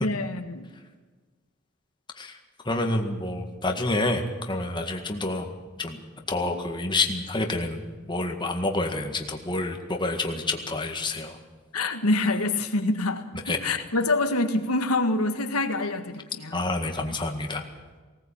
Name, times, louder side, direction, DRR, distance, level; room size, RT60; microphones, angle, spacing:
voice 1, 0.0-0.7 11.7-16.6, left 2 dB, 85° left, 6 dB, 1.7 m, -26 dB
voice 2, 2.7-5.5 5.8-6.0 6.3-7.8 8.1-11.4 13.5-13.6 16.5-17.6, left 2 dB, 20° left, 3 dB, 1.9 m, -28 dB
19.0 x 18.0 x 8.7 m, 1.3 s
head